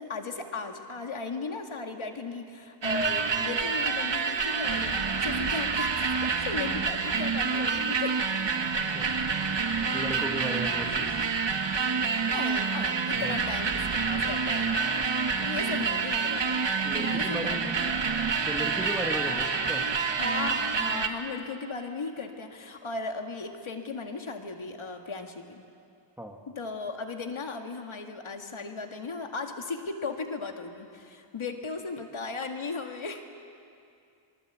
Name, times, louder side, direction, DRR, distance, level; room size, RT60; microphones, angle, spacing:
voice 1, 0.0-6.1 6.4-8.2 12.3-16.6 17.0-18.1 19.3-19.5 20.2-25.6 26.5-33.2, left 4 dB, 85° left, 4 dB, 2.0 m, -36 dB
sound 1, 2.8-21.1, right 5 dB, 60° right, 1.7 m, -28 dB
voice 2, 8.6-9.3 9.9-11.4 13.1-13.4 15.3-15.6 16.8-17.7 18.4-19.9 26.2-26.4, right 1 dB, 5° right, 2 dB, 2.6 m, -36 dB
26.5 x 23.5 x 8.3 m, 2.5 s
wide cardioid pair, 85°, 47 cm